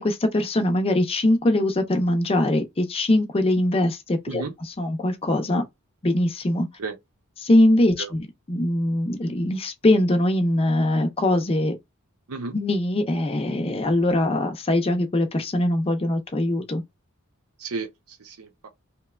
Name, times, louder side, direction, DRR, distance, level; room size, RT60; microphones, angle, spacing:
voice 1, 0.0-4.4 4.8-5.6 6.0-6.7 7.4-11.8 12.5-16.8, left 1 dB, 25° left, 0.5 m, -22 dB
voice 2, 17.6-18.7, right 4 dB, 80° right, 0.7 m, -33 dB
2.9 x 2.1 x 2.3 m
head